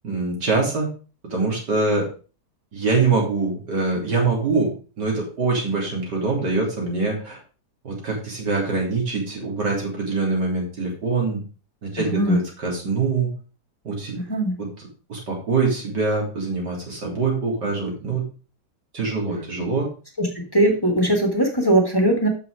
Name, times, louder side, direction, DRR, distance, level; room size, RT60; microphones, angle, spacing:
voice 1, 0.0-0.9 1.3-2.1 2.7-4.7 5.0-7.4 7.8-11.4 11.8-13.3 13.8-14.2 14.6-14.7 15.1-18.2 18.9-19.9, right 3 dB, 80° right, -1 dB, 3.9 m, -24 dB
voice 2, 12.0-12.4 14.3-14.5 20.2-20.3 20.5-22.3, right 1 dB, 15° left, 1 dB, 1.9 m, -19 dB
8.7 x 6.8 x 4.9 m, 0.36 s
omnidirectional pair, 1.8 m